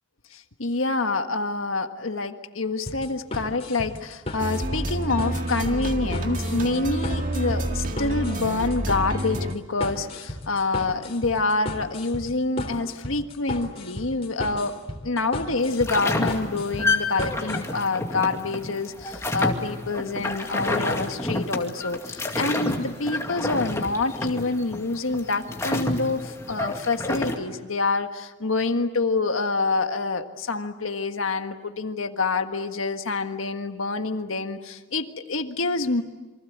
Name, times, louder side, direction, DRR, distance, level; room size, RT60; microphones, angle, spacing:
voice 1, 0.3-14.8 15.0-36.0, left 3 dB, 80° left, 7 dB, 1.6 m, -27 dB
sound 1, 2.9-17.6, left 1 dB, 30° left, 3.6 m, -35 dB
sound 2, 4.4-9.6, right 1 dB, 40° right, 1.9 m, -28 dB
sound 3, 15.6-27.4, left 2 dB, 15° left, 2.2 m, -29 dB
28.0 x 24.5 x 8.1 m, 1.2 s
head